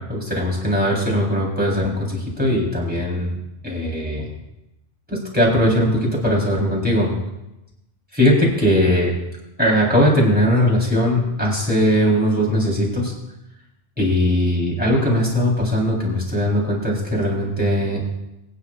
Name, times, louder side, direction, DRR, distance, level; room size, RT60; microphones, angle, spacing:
voice 1, 0.1-3.4 3.6-4.3 5.1-7.1 8.1-9.1 9.6-13.1 14.0-18.0, equal, 5° right, -4 dB, 3.7 m, -19 dB
22.5 x 9.5 x 2.5 m, 0.93 s
omnidirectional pair, 1.3 m